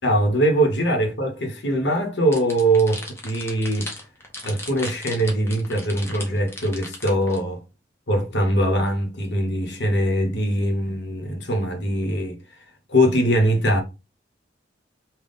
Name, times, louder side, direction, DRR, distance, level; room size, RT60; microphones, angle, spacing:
voice 1, 0.0-3.9 4.4-7.6 8.1-12.4 12.9-13.8, right 1 dB, 65° left, 1.0 m, -22 dB
sound 1, 2.3-7.4, left 2 dB, 15° left, 0.7 m, -36 dB
3.5 x 2.3 x 3.8 m
head